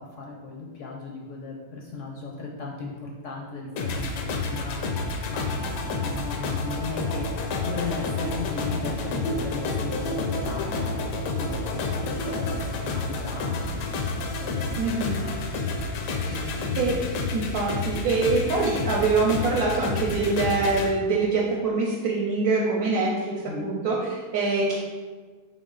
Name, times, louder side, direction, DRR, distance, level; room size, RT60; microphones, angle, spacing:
voice 1, 0.0-15.7 16.3-17.0 23.5-23.7, left 3 dB, 70° left, -1 dB, 0.8 m, -36 dB
sound 1, 3.8-20.9, left 3 dB, 85° left, 1.2 m, -29 dB
voice 2, 14.8-15.3 16.3-16.4 16.8-16.9 17.3-23.3 23.6-24.8, right 3 dB, 70° right, -3 dB, 1.1 m, -24 dB
4.2 x 3.1 x 3.7 m, 1.4 s
omnidirectional pair, 1.7 m